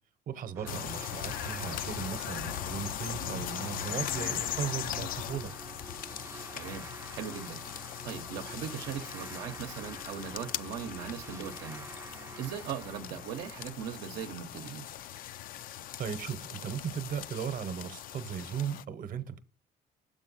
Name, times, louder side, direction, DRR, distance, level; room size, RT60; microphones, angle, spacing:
voice 1, 0.3-5.5 16.0-19.4, right 8 dB, 55° right, 0.8 m, -37 dB
sound 1, 0.5-14.9, right 3 dB, 15° right, 0.4 m, -48 dB
sound 2, 0.7-18.8, left 12 dB, 55° left, 0.4 m, -39 dB
voice 2, 6.5-11.9 12.4-14.9, right 8 dB, 80° right, 0.7 m, -40 dB
7.1 x 5.2 x 4.0 m
cardioid pair, 110°, 17 cm